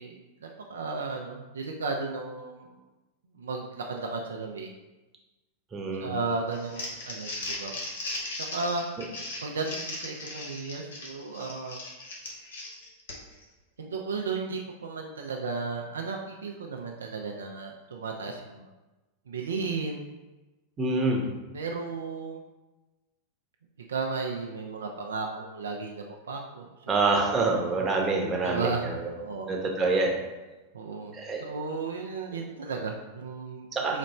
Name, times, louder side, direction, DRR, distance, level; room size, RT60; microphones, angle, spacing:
voice 1, 0.0-2.8 3.4-4.7 6.0-7.7 8.4-8.8 9.4-11.8 13.8-18.7 19.3-20.0 21.5-22.4 23.9-27.2 28.4-29.5 30.7-31.1 31.4-33.7 33.9-34.0, right 4 dB, 70° right, 1 dB, 0.4 m, -34 dB
voice 2, 5.7-6.1 20.8-21.2 26.9-29.1 29.5-30.1 31.1-31.4 33.7-34.0, right 3 dB, 20° right, 0 dB, 0.9 m, -26 dB
Crumpling crinkling, 6.5-13.4, left 2 dB, 65° left, 1.0 m, -37 dB
4.1 x 3.1 x 4.0 m, 1.1 s
figure-of-eight pair, 90°, 0 cm